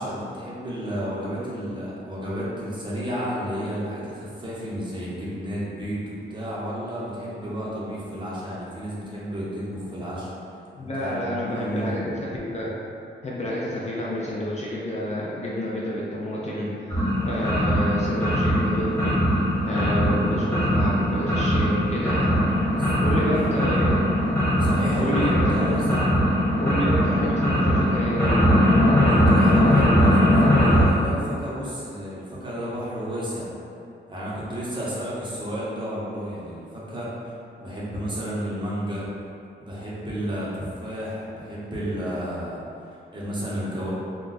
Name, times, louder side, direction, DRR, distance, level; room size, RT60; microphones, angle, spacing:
voice 1, 0.0-10.3 10.8-12.0 22.8-22.9 23.3-23.5 24.6-26.0 26.5-26.6 29.0-33.5 34.1-39.1 39.6-43.9, equal, 25° right, -8 dB, 0.8 m, -32 dB
voice 2, 10.8-12.7 13.2-22.3 23.0-24.0 25.0-25.8 26.6-28.4, equal, 35° left, -6 dB, 0.5 m, -29 dB
sound 1, 16.9-30.8, equal, 15° left, 0.9 m, -20 dB
2.4 x 2.2 x 3.9 m, 2.5 s
cardioid pair, 105°, 20 cm